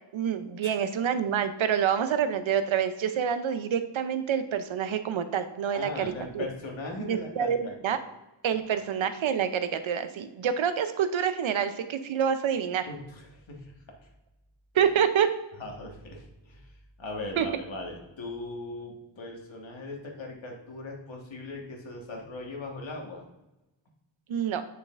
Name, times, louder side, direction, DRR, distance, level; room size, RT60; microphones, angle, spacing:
voice 1, 0.1-6.4 7.1-8.0 8.4-12.9 14.7-15.3 17.4-17.5 24.3-24.6, right 8 dB, 80° right, 10 dB, 0.7 m, -27 dB
voice 2, 5.7-8.0 8.5-8.8 12.8-13.7 14.0-14.1 15.6-23.2, left 2 dB, 75° left, 0 dB, 1.6 m, -39 dB
7.7 x 6.5 x 2.5 m, 1.0 s
wide cardioid pair, 105°, 46 cm